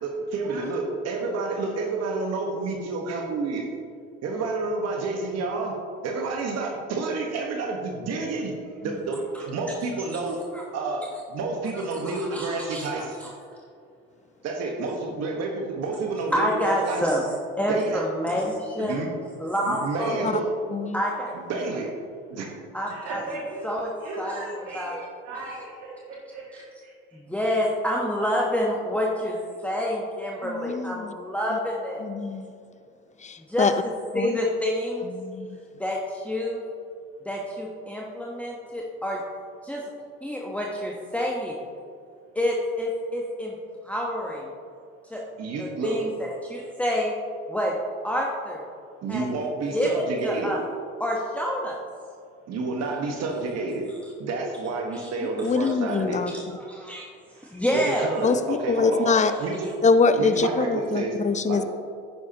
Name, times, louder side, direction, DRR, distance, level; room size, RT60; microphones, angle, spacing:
voice 1, 0.0-3.7 4.2-5.8 6.0-8.5 8.8-10.4 10.7-13.2 14.4-17.0 17.7-18.0 18.3-18.4 18.8-19.1 19.6-20.5 21.3-21.9 22.3-22.5 45.4-46.0 49.0-50.6 52.5-53.9 54.2-56.2 57.7-59.1 59.4-59.7 60.2-61.1 61.4-61.6, right 3 dB, 60° right, 1 dB, 1.4 m, -29 dB
voice 2, 12.0-12.9 13.2-13.3 16.3-17.2 17.6-19.0 19.4-20.1 20.9-21.3 21.7-21.8 22.7-23.2 23.6-23.9 24.2-24.4 24.7-24.9 27.1-29.3 29.6-32.0 33.5-35.1 35.8-36.6 37.2-39.2 39.6-39.8 40.2-41.6 42.3-43.6 43.8-44.5 45.1-45.2 45.6-47.1 47.5-47.7 48.0-48.6 49.1-49.3 49.7-50.6 51.0-51.8 54.9-55.1 56.3-57.1 57.4-58.1, equal, 5° left, -2 dB, 1.1 m, -28 dB
voice 3, 20.7-21.0 30.4-31.1 31.5-31.6 32.0-32.5 33.2-33.7 34.1-34.4 35.1-35.6 55.4-56.3 58.2-59.3 59.8-61.6, left 4 dB, 25° left, 11 dB, 0.6 m, -24 dB
voice 4, 22.9-26.9 32.6-32.7 35.5-35.6 45.0-45.1 57.3-57.4, right 2 dB, 75° right, -7 dB, 2.3 m, -38 dB
9.9 x 9.6 x 2.9 m, 2.3 s
supercardioid pair, 75°, 30 cm